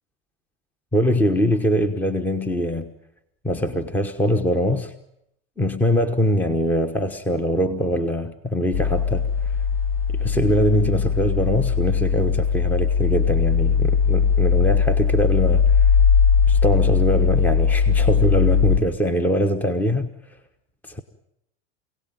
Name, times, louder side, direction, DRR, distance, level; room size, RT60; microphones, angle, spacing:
voice 1, 0.9-2.9 3.4-4.9 5.6-9.3 10.1-15.6 16.5-20.1 20.9-21.0, equal, 5° left, 1.1 m, -22 dB
sound 1, 8.7-18.8, left 6 dB, 70° left, 6.4 m, -19 dB
27.0 x 17.5 x 9.1 m
supercardioid pair, 140°, 31 cm